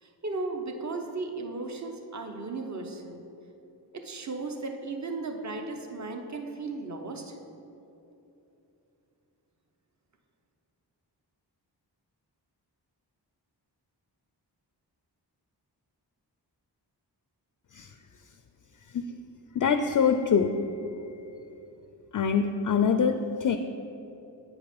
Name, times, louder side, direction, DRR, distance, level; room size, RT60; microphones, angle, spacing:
voice 1, 0.0-3.2 3.9-7.4, right 3 dB, 40° right, 4 dB, 0.9 m, -36 dB
voice 2, 19.5-21.2 22.1-23.6, left 6 dB, 50° left, 8 dB, 0.5 m, -25 dB
8.4 x 4.9 x 5.2 m, 3.0 s
cardioid pair, 45°, 43 cm